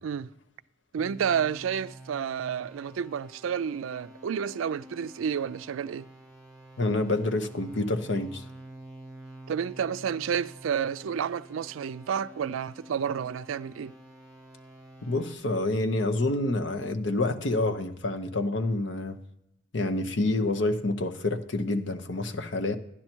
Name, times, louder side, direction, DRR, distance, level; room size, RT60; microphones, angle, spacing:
voice 1, 0.9-6.1 9.5-13.9, right 7 dB, 90° right, 0.4 m, -30 dB
sound 1, 1.0-15.3, right 1 dB, ahead, 4.2 m, -48 dB
voice 2, 6.8-8.4 15.0-19.2 19.7-22.8, left 2 dB, 65° left, 0.9 m, -28 dB
12.0 x 10.0 x 4.5 m
head